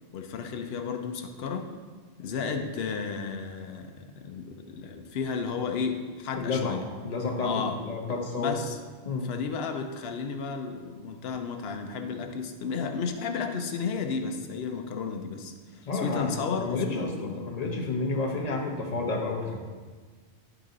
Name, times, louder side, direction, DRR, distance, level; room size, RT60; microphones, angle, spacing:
voice 1, 0.1-1.7 2.2-6.8 7.4-7.7 8.4-8.8 9.2-17.4, left 5 dB, 65° left, 5 dB, 0.9 m, -33 dB
voice 2, 6.4-6.8 7.0-8.6 9.1-9.3 15.8-19.6, left 3 dB, 40° left, 1 dB, 0.9 m, -30 dB
10.0 x 3.9 x 3.8 m, 1.5 s
omnidirectional pair, 1.2 m